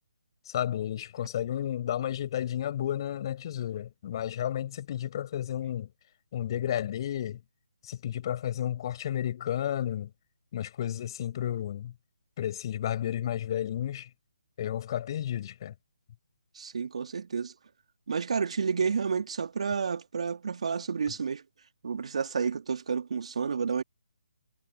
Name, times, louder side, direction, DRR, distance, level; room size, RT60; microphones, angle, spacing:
voice 1, 0.5-5.9 6.3-7.4 7.8-10.1 10.5-11.9 12.4-14.1 14.6-15.7, left 11 dB, 40° left, 5.7 m, -32 dB
voice 2, 16.5-17.5 18.1-21.4 21.8-23.8, right 6 dB, 60° right, 2.0 m, -30 dB
figure-of-eight pair, 150°, 4 cm